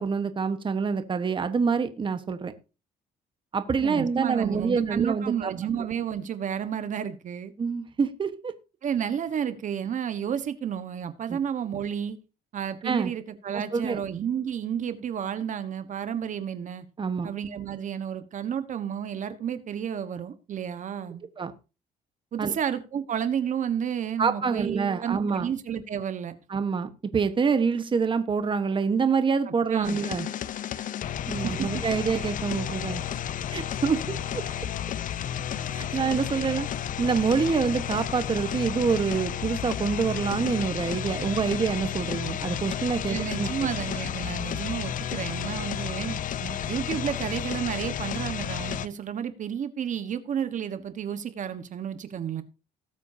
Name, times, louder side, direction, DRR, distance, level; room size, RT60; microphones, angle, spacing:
voice 1, 0.0-2.5 3.5-5.5 7.6-8.5 11.3-11.4 12.8-13.1 13.5-14.0 17.0-17.3 21.4-21.5 22.4-22.6 24.2-25.5 26.5-30.3 31.3-33.0 33.5-34.4 35.7-36.7 37.0-43.5 46.4-46.6, right 5 dB, 30° right, 1.3 m, -26 dB
voice 2, 3.8-7.5 8.8-12.2 12.5-16.8 17.2-21.2 22.3-26.3 29.5-30.0 31.4-31.8 32.2-32.3 35.9-36.0 43.1-46.2 46.6-52.4, right 8 dB, 50° right, 1.3 m, -31 dB
sound 1, 29.8-48.9, left 10 dB, 50° left, 0.7 m, -32 dB
19.0 x 8.2 x 2.8 m
cardioid pair, 110°, 17 cm